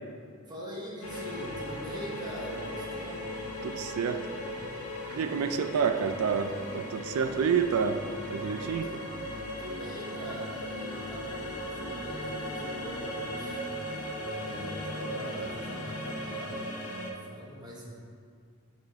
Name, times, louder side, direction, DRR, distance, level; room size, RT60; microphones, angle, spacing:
voice 1, 0.4-3.4 8.8-9.0 9.6-13.8 14.2-18.0, equal, 20° right, -4 dB, 0.9 m, -43 dB
sound 1, 1.0-17.1, equal, 85° left, 0.9 m, -37 dB
voice 2, 3.6-4.2 5.1-8.0 8.3-8.9, right 6 dB, 80° right, 9 dB, 0.3 m, -28 dB
7.7 x 3.7 x 3.4 m, 2.2 s
head